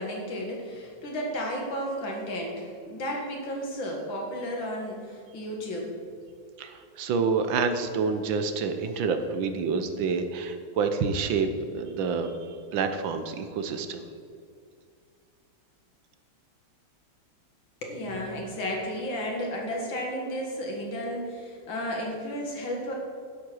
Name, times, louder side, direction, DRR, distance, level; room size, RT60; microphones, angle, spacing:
voice 1, 0.0-5.9 17.8-22.9, equal, 70° left, -1 dB, 2.8 m, -33 dB
voice 2, 6.6-14.0, right 5 dB, 75° right, 8 dB, 1.5 m, -28 dB
10.5 x 7.8 x 6.3 m, 2.3 s
omnidirectional pair, 2.2 m